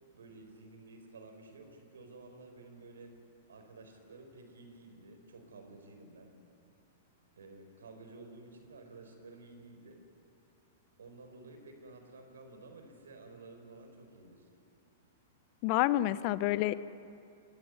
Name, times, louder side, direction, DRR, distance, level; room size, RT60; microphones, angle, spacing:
voice 1, 0.1-3.1 3.5-6.4 7.4-10.0 11.0-14.5 15.8-15.9, right 3 dB, 75° right, 5 dB, 4.7 m, -52 dB
voice 2, 15.6-16.7, left 16 dB, 45° left, 16 dB, 0.8 m, -28 dB
25.0 x 16.5 x 9.5 m, 2.6 s
figure-of-eight pair, 105°, 0 cm